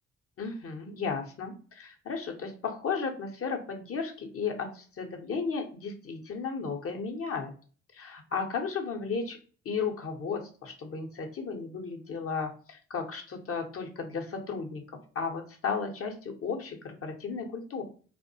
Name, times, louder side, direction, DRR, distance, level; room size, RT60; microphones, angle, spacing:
voice 1, 0.4-7.5 7.9-9.4 9.6-14.8 15.1-17.8, left 5 dB, 45° left, 3 dB, 0.7 m, -34 dB
2.3 x 2.1 x 2.6 m, 0.40 s
hypercardioid pair, 40°, 31 cm